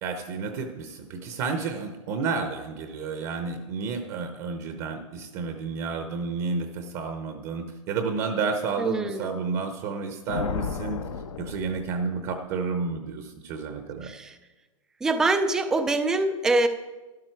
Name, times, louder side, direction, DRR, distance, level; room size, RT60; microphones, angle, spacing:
voice 1, 0.0-11.0 11.4-14.1, right 4 dB, 30° right, 6 dB, 0.8 m, -31 dB
voice 2, 8.8-9.3 14.0-14.3 15.0-16.7, right 2 dB, 5° right, 10 dB, 0.3 m, -24 dB
Thunder, 10.3-12.5, left 6 dB, 85° left, 1.0 m, -33 dB
12.5 x 11.5 x 4.5 m, 1.1 s
hypercardioid pair, 165°, 17 cm